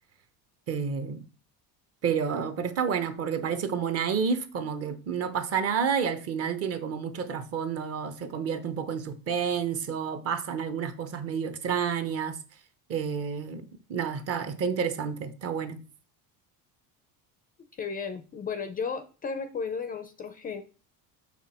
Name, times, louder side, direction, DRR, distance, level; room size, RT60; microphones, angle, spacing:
voice 1, 0.7-1.2 2.0-12.4 12.9-13.6 13.9-15.8, right 7 dB, 40° right, 0.8 m, -30 dB
voice 2, 17.7-20.6, left 5 dB, 25° left, 0.4 m, -34 dB
6.5 x 5.9 x 4.2 m
cardioid pair, 165°, 38 cm